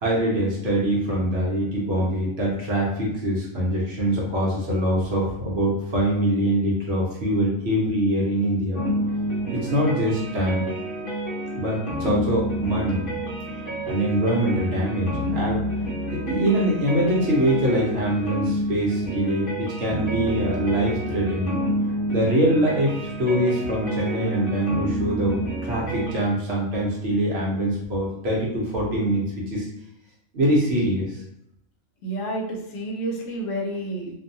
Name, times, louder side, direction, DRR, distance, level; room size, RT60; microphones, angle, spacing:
voice 1, 0.0-8.8 9.5-10.6 11.6-13.0 13.5-13.6 13.9-15.6 16.3-21.6 22.1-25.4 25.6-29.2 29.5-29.7 30.3-31.2, right 1 dB, 55° right, -4 dB, 1.0 m, -23 dB
sound 1, 8.7-26.1, equal, 50° left, 0.7 m, -29 dB
voice 2, 32.0-34.1, right 1 dB, 70° left, -1 dB, 1.0 m, -29 dB
2.6 x 2.2 x 2.6 m, 0.80 s
omnidirectional pair, 1.4 m